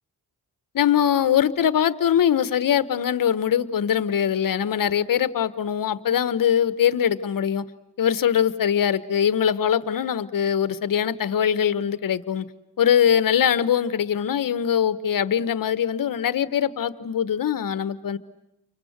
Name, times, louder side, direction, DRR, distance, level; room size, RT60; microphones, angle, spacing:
voice 1, 0.7-7.6 8.0-12.5 12.8-18.2, left 9 dB, 65° left, 14 dB, 1.2 m, -22 dB
30.0 x 24.5 x 8.1 m, 0.88 s
cardioid pair, 85°, 36 cm